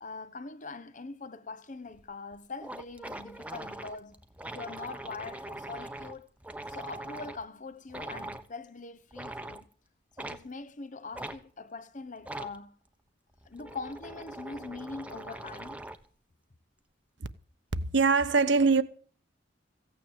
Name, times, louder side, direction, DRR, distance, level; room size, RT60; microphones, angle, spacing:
voice 1, 0.0-4.2 4.5-6.3 6.7-9.7 10.1-12.8 13.4-15.8, left 3 dB, 40° left, 1.0 m, -42 dB
sound 1, 1.9-2.0 2.3-2.4 2.6-7.4 7.9-8.5 9.1-9.6 10.2-10.4 11.1-11.4 12.2-12.6 13.3-16.1, right 1 dB, 5° right, 1.0 m, -42 dB
voice 2, 17.7-18.8, right 4 dB, 65° right, 1.1 m, -23 dB
16.0 x 9.3 x 7.5 m
head